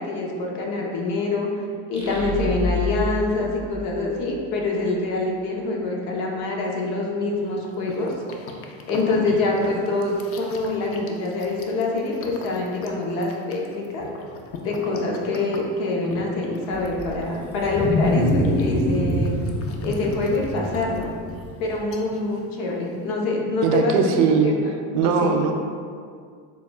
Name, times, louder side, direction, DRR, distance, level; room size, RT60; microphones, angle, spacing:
voice 1, 0.0-1.5 1.9-8.1 8.8-14.1 14.6-19.4 19.8-21.1 21.6-24.5 25.0-25.4, left 2 dB, 70° left, -1 dB, 0.9 m, -25 dB
sound 1, 1.9-4.6, left 2 dB, 15° left, 1.1 m, -29 dB
sound 2, 7.3-23.1, left 3 dB, 40° left, 0.5 m, -42 dB
Wild animals, 16.7-21.8, equal, 5° right, 0.7 m, -25 dB
voice 2, 23.6-24.5 24.9-25.5, right 6 dB, 60° right, 4 dB, 0.5 m, -19 dB
6.8 x 2.3 x 2.3 m, 2.1 s
supercardioid pair, 105°, 35 cm